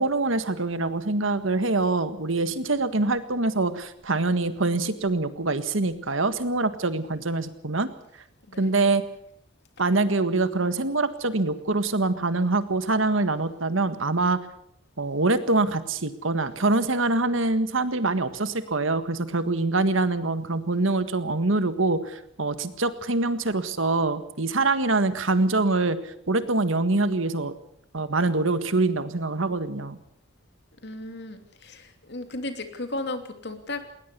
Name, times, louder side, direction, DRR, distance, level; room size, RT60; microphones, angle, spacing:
voice 1, 0.0-7.9 8.6-9.0 9.8-14.4 15.0-27.5 27.9-30.0, right 2 dB, 80° right, 11 dB, 1.7 m, -24 dB
voice 2, 30.8-33.9, left 2 dB, 60° left, 7 dB, 2.8 m, -35 dB
20.5 x 19.5 x 6.9 m, 0.72 s
head